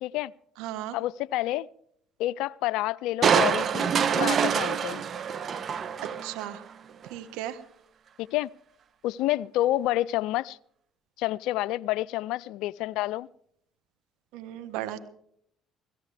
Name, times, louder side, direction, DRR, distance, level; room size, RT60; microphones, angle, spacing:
voice 1, 0.0-0.3 0.9-1.7 2.2-5.0 8.2-8.5 9.0-10.6 11.2-13.3, left 15 dB, 75° left, 0.5 m, -29 dB
voice 2, 0.6-1.0 6.2-6.6 7.1-7.6 14.3-15.0, right 13 dB, 80° right, 1.4 m, -35 dB
Crushing, 3.2-6.6 7.0-7.1, right 7 dB, 50° right, 1.1 m, -25 dB
17.0 x 16.5 x 3.4 m
supercardioid pair, 70°, 0 cm